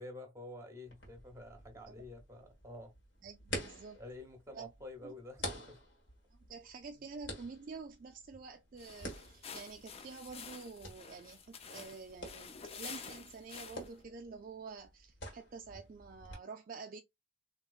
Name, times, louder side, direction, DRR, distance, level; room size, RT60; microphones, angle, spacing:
voice 1, 0.0-2.9 3.9-5.8, left 2 dB, 15° right, 1.0 m, -49 dB
sound 1, 0.9-16.4, left 1 dB, 60° left, 1.6 m, -49 dB
voice 2, 3.2-4.0 4.5-4.7 5.0-5.1 6.5-17.0, right 4 dB, 45° right, 0.3 m, -48 dB
sound 2, 8.7-14.0, left 6 dB, 30° left, 0.4 m, -49 dB
3.7 x 2.9 x 2.4 m
head